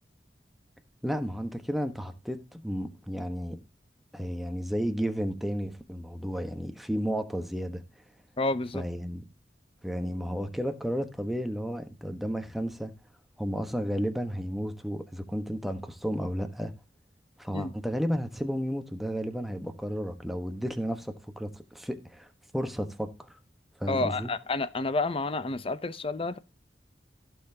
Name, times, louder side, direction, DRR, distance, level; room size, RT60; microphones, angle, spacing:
voice 1, 1.0-3.6 4.1-7.8 8.7-9.2 9.8-12.9 13.4-16.7 17.4-22.3 22.5-23.3 23.8-24.3, equal, ahead, 1.2 m, -32 dB
voice 2, 8.4-8.8 17.5-17.7 23.9-26.4, left 3 dB, 30° left, 0.6 m, -30 dB
15.5 x 6.9 x 2.8 m
head